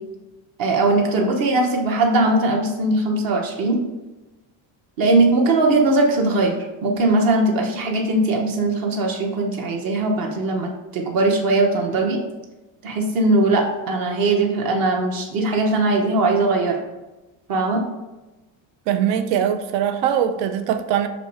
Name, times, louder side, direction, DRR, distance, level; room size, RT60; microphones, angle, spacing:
voice 1, 0.6-3.8 5.0-12.2 12.8-16.8 17.5-17.8, right 2 dB, 50° right, 1 dB, 1.2 m, -20 dB
voice 2, 18.9-21.1, right 9 dB, 70° right, 9 dB, 0.7 m, -21 dB
6.8 x 3.2 x 4.5 m, 1.1 s
cardioid pair, 170°, 46 cm